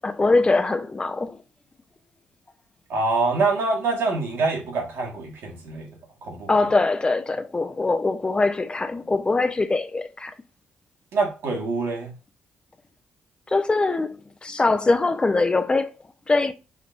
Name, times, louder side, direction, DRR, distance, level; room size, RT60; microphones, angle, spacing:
voice 1, 0.0-1.4 6.5-10.3 13.5-15.9 16.3-16.5, left 3 dB, 25° left, 0.5 m, -22 dB
voice 2, 2.9-5.9 6.2-6.5 11.1-12.1, right 3 dB, 75° right, 1.4 m, -25 dB
4.9 x 2.9 x 2.4 m
supercardioid pair, 70°, 4 cm